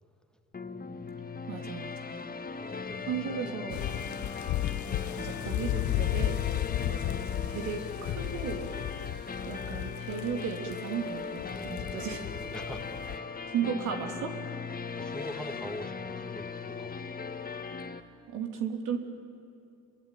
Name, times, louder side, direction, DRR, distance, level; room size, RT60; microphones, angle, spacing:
sound 1, 0.5-18.0, left 5 dB, 30° left, 1.7 m, -38 dB
voice 1, 1.5-2.1 3.1-3.9 5.2-6.4 6.9-8.7 9.5-12.2 13.5-14.5 18.3-19.0, right 7 dB, 85° right, 3 dB, 3.2 m, -35 dB
voice 2, 2.6-3.8 5.0-5.3 11.5-13.3 14.8-17.1, equal, 5° left, 6 dB, 1.9 m, -45 dB
sound 2, 3.7-13.2, left 14 dB, 70° left, 0.7 m, -34 dB
28.0 x 22.5 x 9.3 m, 2.5 s
cardioid pair, 90°, 30 cm